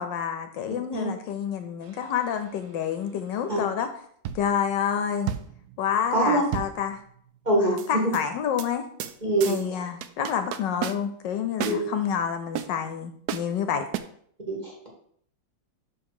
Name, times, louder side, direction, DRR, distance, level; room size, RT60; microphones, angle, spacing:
voice 1, 0.0-3.9 4.3-5.3 5.8-7.0 7.5-8.8 9.4-13.8, left 8 dB, 75° left, 8 dB, 1.2 m, -28 dB
sound 1, 1.8-2.4 4.2-4.7 5.3-7.3 7.8-8.2 8.6-8.7 9.0-9.2 9.4-9.7 10.0-11.3 11.6-11.8 12.5-12.7 13.3-13.5 13.9-14.0, right 10 dB, 75° right, 0.9 m, -33 dB
voice 2, 7.5-7.8 9.2-9.6 11.6-11.9 14.5-14.9, right 1 dB, 25° right, -3 dB, 1.7 m, -24 dB
5.7 x 5.2 x 4.8 m, 0.63 s
omnidirectional pair, 2.1 m